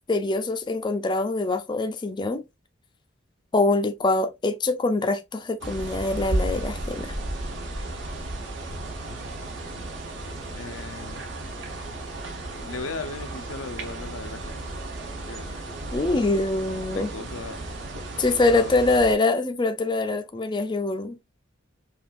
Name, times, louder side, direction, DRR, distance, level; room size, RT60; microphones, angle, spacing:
voice 1, 0.1-2.4 3.5-7.1 15.9-17.1 18.2-21.2, left 2 dB, 25° left, 0.4 m, -24 dB
sound 1, 5.6-19.1, right 2 dB, 65° right, 1.0 m, -34 dB
voice 2, 10.5-11.2 12.6-14.6 15.3-15.5 16.9-17.6 18.3-18.8, left 4 dB, 85° left, 0.6 m, -37 dB
5.4 x 2.4 x 2.4 m
head